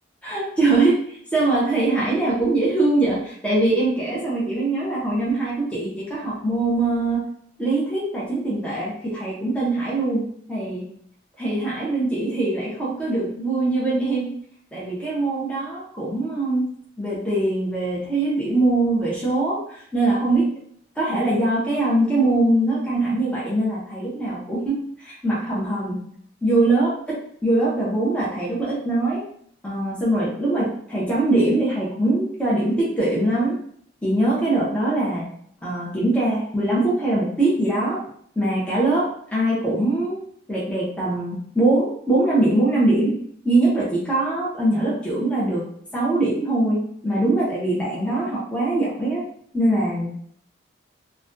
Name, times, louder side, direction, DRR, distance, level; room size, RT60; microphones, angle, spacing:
voice 1, 0.2-7.3 7.6-10.9 11.4-14.3 14.7-20.5 21.0-26.1 26.4-29.2 29.6-33.6 34.0-35.3 35.6-38.0 38.4-40.2 40.5-43.2 43.4-45.6 45.9-49.3 49.5-50.1, right 2 dB, 5° left, -7 dB, 0.5 m, -22 dB
2.4 x 2.1 x 2.5 m, 0.65 s
head